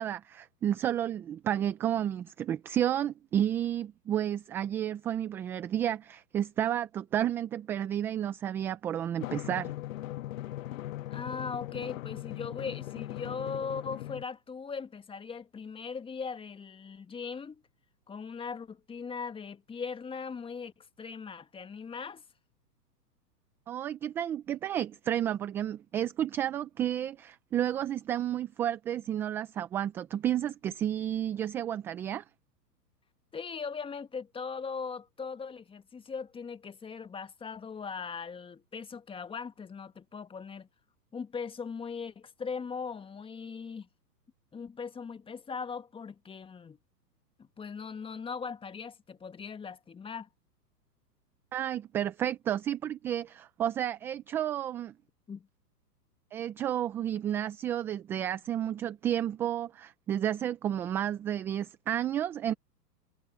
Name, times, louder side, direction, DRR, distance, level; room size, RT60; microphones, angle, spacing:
voice 1, 0.0-9.7 23.7-32.2 51.5-54.9 56.3-62.5, right 10 dB, 5° right, 0.4 m, -31 dB
Drum, 9.2-14.2, left 15 dB, 50° left, 1.5 m, -39 dB
voice 2, 11.1-17.6 18.1-22.2 33.3-40.7 41.1-43.9 44.5-46.8 47.4-50.3 55.3-55.5, left 5 dB, 10° left, 1.6 m, -39 dB
hypercardioid pair, 115°, 50 cm